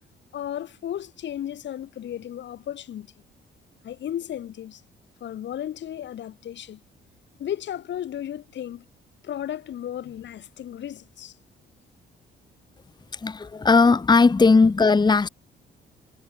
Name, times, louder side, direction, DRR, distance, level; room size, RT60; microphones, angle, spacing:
voice 1, 0.3-3.1 3.8-4.8 5.2-6.8 7.4-8.8 9.2-11.3, left 10 dB, 65° left, 1.7 m, -34 dB
voice 2, 13.1-15.3, left 4 dB, 20° left, 1.1 m, -17 dB
cardioid pair, 90°, 20 cm